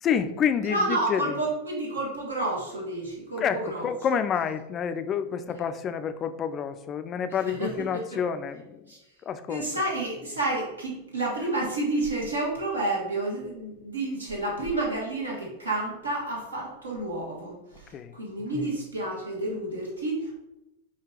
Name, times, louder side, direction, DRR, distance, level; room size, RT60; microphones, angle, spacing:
voice 1, 0.0-1.3 3.4-8.8 9.3-9.7 17.9-18.1, left 7 dB, 30° left, 10 dB, 0.3 m, -28 dB
voice 2, 0.6-3.9 5.3-5.4 7.4-8.2 8.9-9.0 9.5-20.4, right 2 dB, 75° right, -2 dB, 1.3 m, -30 dB
4.7 x 2.8 x 3.2 m, 0.93 s
figure-of-eight pair, 90°, 0 cm